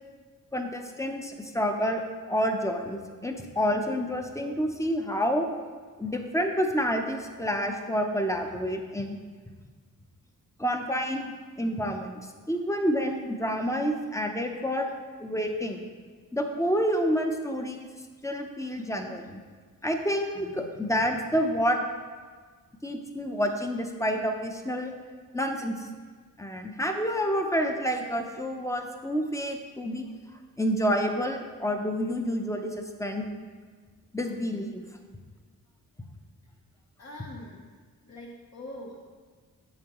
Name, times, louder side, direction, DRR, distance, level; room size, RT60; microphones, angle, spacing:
voice 1, 0.5-5.5 6.0-9.2 10.6-12.2 12.5-14.9 15.2-15.8 16.3-17.9 18.2-19.4 19.8-21.8 22.8-24.9 25.3-25.9 26.4-30.0 30.6-33.3 34.1-34.8, equal, 10° left, 4 dB, 0.7 m, -28 dB
voice 2, 37.0-37.7 38.0-39.0, left 1 dB, 45° left, -3 dB, 0.9 m, -43 dB
7.3 x 7.1 x 3.0 m, 1.5 s
cardioid pair, 85°, 35 cm